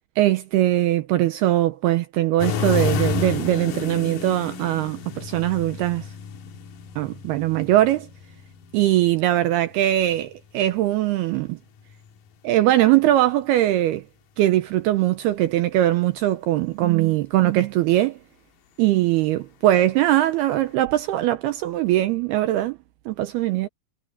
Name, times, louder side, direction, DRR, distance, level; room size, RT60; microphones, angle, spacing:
voice 1, 0.2-6.1 7.0-8.1 8.7-11.6 12.4-14.0 14.4-18.2 18.8-22.8 23.1-23.7, right 14 dB, 85° right, 2.3 m, -21 dB
sound 1, 2.4-10.2 11.8-12.2 20.6-20.7, left 6 dB, 60° left, 2.7 m, -30 dB
omnidirectional pair, 5.5 m